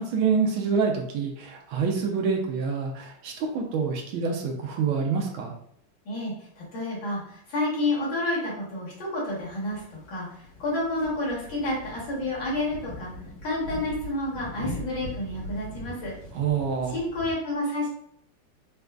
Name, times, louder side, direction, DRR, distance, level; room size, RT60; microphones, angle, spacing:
voice 1, 0.0-5.5 16.3-16.9, right 5 dB, 75° right, 1 dB, 1.4 m, -26 dB
voice 2, 6.1-13.1 13.4-16.1 16.9-17.9, left 2 dB, 65° left, -5 dB, 1.8 m, -30 dB
sound 1, 9.3-17.3, left 1 dB, 80° left, 2.1 m, -41 dB
4.3 x 2.4 x 2.3 m, 0.69 s
omnidirectional pair, 2.4 m